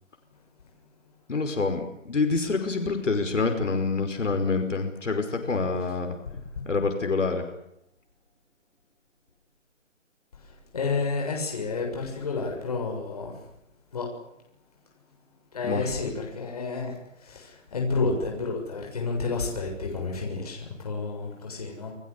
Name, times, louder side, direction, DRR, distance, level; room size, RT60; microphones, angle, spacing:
voice 1, 1.3-6.2 6.7-7.4 15.6-15.9, left 4 dB, 70° left, 5 dB, 5.4 m, -26 dB
voice 2, 10.7-13.3 13.9-14.1 15.5-21.9, left 4 dB, 30° left, 1 dB, 7.1 m, -30 dB
29.0 x 19.5 x 8.4 m, 0.79 s
hypercardioid pair, 180°, 38 cm